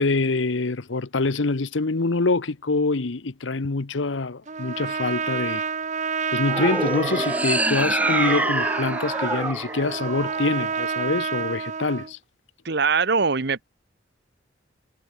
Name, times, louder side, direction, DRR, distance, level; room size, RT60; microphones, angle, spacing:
voice 1, 0.0-5.6 6.3-12.2, left 3 dB, 80° left, 1.0 m, -25 dB
Trumpet, 4.5-12.1, right 5 dB, 40° right, 1.1 m, -29 dB
sound 1, 6.5-10.8, right 1 dB, 10° right, 1.7 m, -26 dB
voice 2, 12.6-13.7, right 5 dB, 60° right, 1.3 m, -22 dB
head